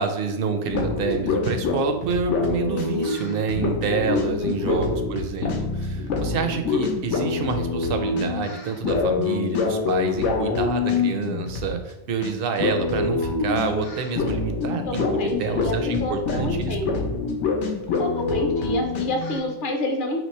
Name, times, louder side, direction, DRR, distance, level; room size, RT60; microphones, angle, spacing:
voice 1, 0.0-16.8, right 5 dB, 60° right, 6 dB, 0.7 m, -28 dB
sound 1, 0.6-11.9 12.2-12.3 12.6-19.4, left 4 dB, 85° left, 1.0 m, -26 dB
voice 2, 4.4-4.8 14.9-17.1 18.0-20.2, left 2 dB, 50° left, 3 dB, 0.8 m, -28 dB
3.2 x 3.0 x 4.2 m, 0.97 s
omnidirectional pair, 1.2 m